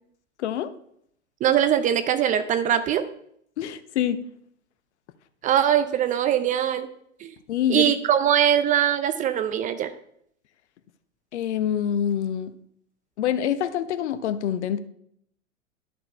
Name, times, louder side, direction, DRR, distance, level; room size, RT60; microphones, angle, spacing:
voice 1, 0.4-0.7 3.6-4.2 7.5-7.9 11.3-12.5 13.2-14.8, left 9 dB, 60° left, 12 dB, 1.0 m, -26 dB
voice 2, 1.4-3.0 5.4-6.9 7.2-7.3 7.7-9.9, right 10 dB, 20° right, 11 dB, 0.5 m, -22 dB
12.0 x 6.7 x 4.4 m, 0.71 s
figure-of-eight pair, 100°, 39 cm